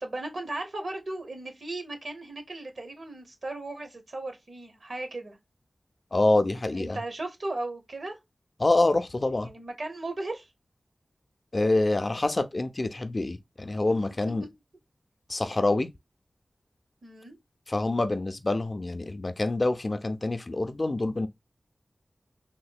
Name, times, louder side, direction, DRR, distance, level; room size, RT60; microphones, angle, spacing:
voice 1, 0.0-5.4 6.7-8.2 9.3-10.5 13.9-14.0 14.2-14.3 17.0-17.4, right 2 dB, 70° right, 0.9 m, -36 dB
voice 2, 6.1-7.0 8.6-9.5 11.5-14.4 15.3-15.9 17.7-21.3, left 2 dB, 40° left, 0.4 m, -26 dB
3.5 x 2.7 x 2.3 m
wide cardioid pair, 85°, 0 cm